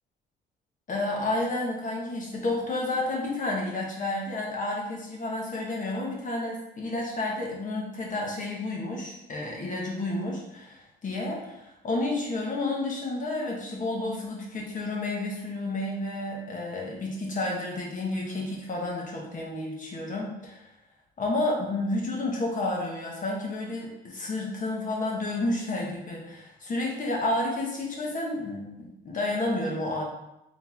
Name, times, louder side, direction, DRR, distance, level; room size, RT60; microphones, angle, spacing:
voice 1, 0.9-20.6 21.2-30.0, left 2 dB, 40° left, -2 dB, 1.3 m, -31 dB
3.8 x 3.1 x 3.6 m, 0.87 s
cardioid pair, 90°, 20 cm